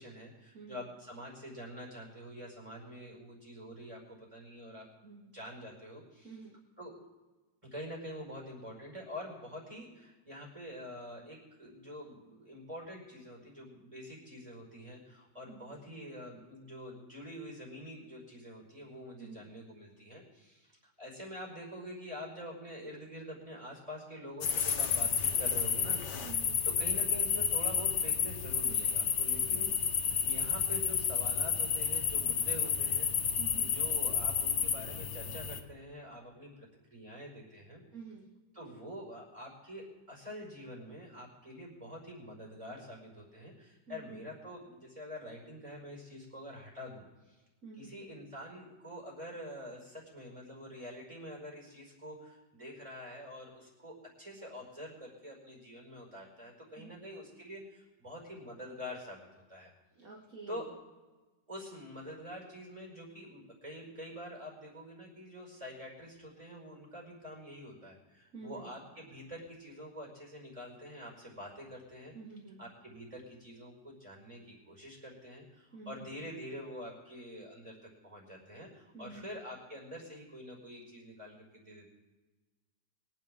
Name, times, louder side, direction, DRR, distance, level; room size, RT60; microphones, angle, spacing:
voice 1, 0.0-4.9 5.3-6.4 6.8-6.9 7.7-29.7 30.2-37.8 38.5-47.4 47.8-59.7 60.5-60.6 61.5-72.1 72.6-81.9, equal, 20° right, -1 dB, 5.2 m, -46 dB
voice 2, 0.5-0.8 5.0-5.3 6.2-6.6 15.5-15.8 19.2-19.5 26.2-26.6 29.5-29.7 33.4-33.7 37.9-38.3 43.9-44.2 47.6-47.9 56.8-57.0 60.0-60.7 68.3-68.7 72.1-72.6 75.7-76.2 78.9-79.3, right 4 dB, 55° right, -3 dB, 2.4 m, -49 dB
sound 1, 24.4-35.6, left 7 dB, 75° left, 1.7 m, -31 dB
23.5 x 10.5 x 3.7 m, 1.2 s
omnidirectional pair, 1.9 m